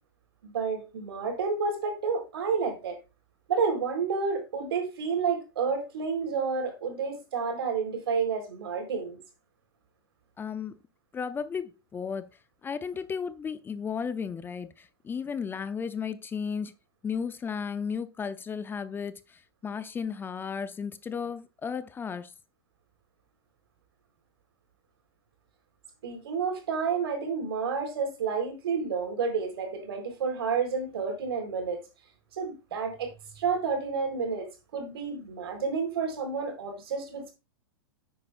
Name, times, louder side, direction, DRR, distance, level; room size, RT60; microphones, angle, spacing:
voice 1, 0.4-3.0 3.5-9.2 26.0-31.8 32.3-37.3, right 5 dB, 70° right, 4.1 m, -30 dB
voice 2, 10.4-10.8 11.1-16.7 17.0-22.3, left 6 dB, 15° left, 0.6 m, -34 dB
10.5 x 8.7 x 2.5 m
hypercardioid pair, 115°, 13 cm